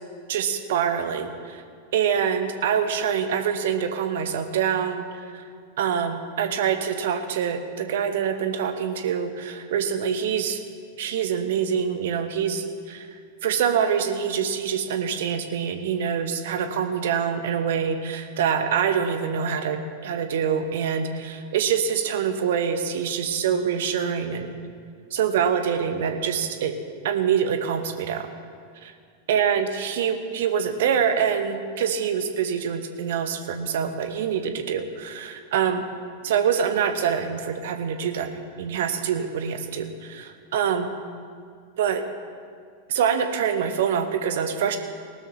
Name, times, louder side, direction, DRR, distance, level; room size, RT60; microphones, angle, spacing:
voice 1, 0.3-1.6 1.9-5.4 5.8-10.6 11.0-24.5 25.1-26.8 27.0-28.3 28.8-28.9 29.3-35.8 36.2-40.9 41.8-42.0 42.9-44.8, right 7 dB, 55° right, 8 dB, 1.1 m, -25 dB
19.0 x 12.5 x 3.2 m, 2.1 s
figure-of-eight pair, 90°, 0 cm